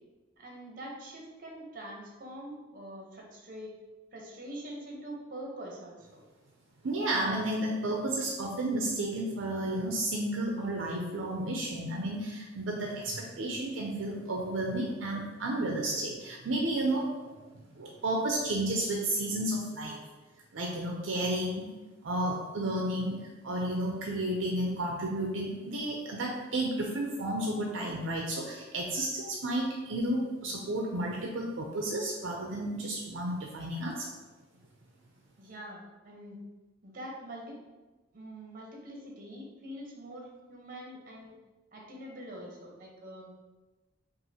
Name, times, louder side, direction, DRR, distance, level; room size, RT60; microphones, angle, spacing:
voice 1, 0.4-3.7 4.1-6.2 35.4-36.4 36.8-37.6 38.1-41.3 41.7-43.3, right 1 dB, 45° right, -1 dB, 0.9 m, -44 dB
voice 2, 6.8-17.4 17.7-20.0 20.5-21.7 22.0-34.1, right 1 dB, 75° right, 0 dB, 0.5 m, -32 dB
5.5 x 2.5 x 2.8 m, 1.2 s
head